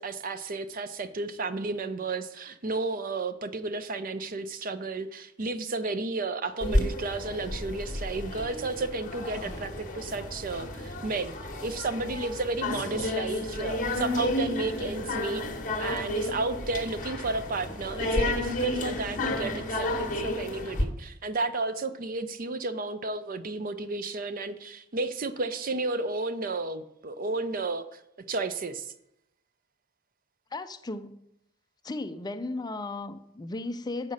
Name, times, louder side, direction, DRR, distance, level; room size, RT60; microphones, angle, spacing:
voice 1, 0.0-11.3 11.6-15.4 15.8-28.0 28.3-28.9, right 3 dB, 45° right, 11 dB, 0.6 m, -32 dB
sound 1, 6.6-20.8, left 1 dB, 45° left, 1.3 m, -31 dB
voice 2, 30.5-31.2 31.8-34.1, left 2 dB, 20° left, 11 dB, 0.4 m, -35 dB
8.0 x 5.6 x 6.4 m, 0.79 s
head